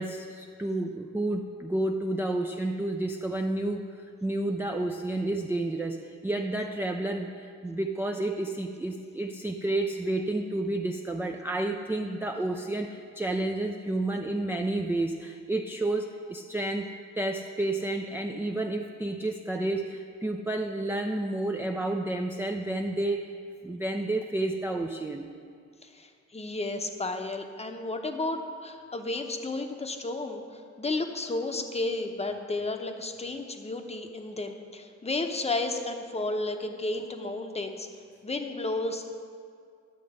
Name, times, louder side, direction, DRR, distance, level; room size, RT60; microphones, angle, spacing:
voice 1, 0.0-16.9 17.2-23.3 23.6-25.3, right 2 dB, 5° right, 3 dB, 0.4 m, -30 dB
voice 2, 25.8-37.9 38.2-39.1, left 2 dB, 20° left, 5 dB, 0.8 m, -32 dB
10.0 x 6.8 x 4.9 m, 2.2 s
cardioid pair, 90°, 30 cm